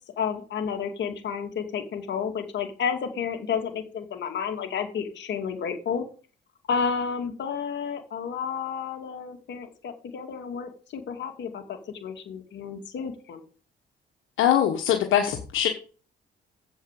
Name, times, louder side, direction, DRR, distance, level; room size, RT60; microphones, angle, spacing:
voice 1, 0.2-6.0 6.7-13.4, left 6 dB, 65° left, 5 dB, 2.4 m, -31 dB
voice 2, 14.4-15.7, left 10 dB, 85° left, 4 dB, 1.3 m, -22 dB
7.9 x 6.9 x 7.6 m, 0.39 s
cardioid pair, 90°, 20 cm